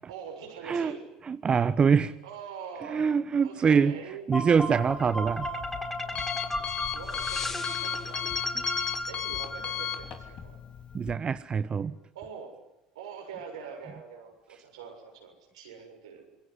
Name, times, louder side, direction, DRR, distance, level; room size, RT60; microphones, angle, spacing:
voice 1, 0.1-1.1 2.2-3.1 3.4-4.3 6.9-8.3 9.1-10.6 12.1-12.6 12.9-16.3, right 6 dB, 85° right, 3 dB, 7.0 m, -43 dB
voice 2, 0.6-0.9 1.3-2.1 2.9-4.0 4.3-5.5 10.9-12.0, right 6 dB, 35° right, 13 dB, 1.1 m, -24 dB
sound 1, 4.3-10.4, left 1 dB, 10° left, 5.7 m, -34 dB
Alarm, 4.7-11.1, left 10 dB, 45° left, 3.3 m, -36 dB
26.5 x 22.5 x 9.8 m, 0.87 s
hypercardioid pair, 70°, 3 cm